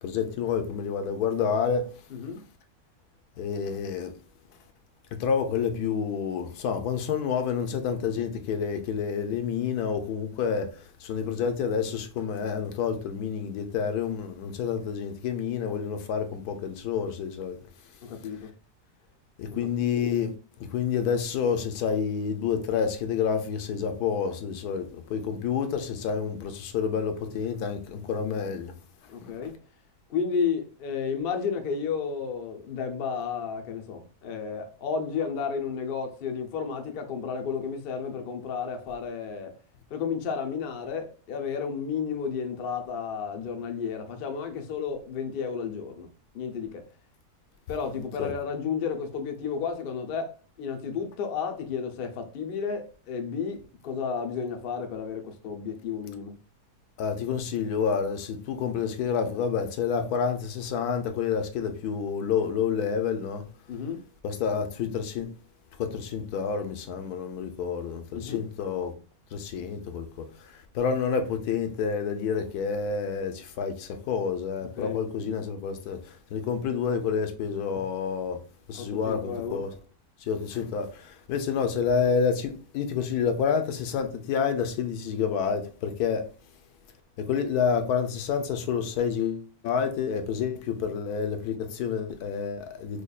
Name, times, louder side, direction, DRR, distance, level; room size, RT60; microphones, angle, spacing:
voice 1, 0.0-1.9 3.4-4.1 5.1-17.6 19.4-20.3 20.6-28.7 29.2-29.3 48.2-48.3 57.0-63.5 64.2-65.3 65.8-68.9 69.3-78.4 78.7-79.7 80.2-86.3 87.2-93.0, left 6 dB, 75° left, 1.1 m, -29 dB
voice 2, 2.1-2.4 18.0-18.5 19.5-19.9 29.1-29.6 30.1-39.5 39.9-46.1 46.3-46.8 47.7-56.4 63.7-64.0 68.1-68.4 74.8-75.0 78.8-79.6, left 6 dB, 60° left, 0.6 m, -32 dB
5.0 x 2.2 x 2.3 m
omnidirectional pair, 1.7 m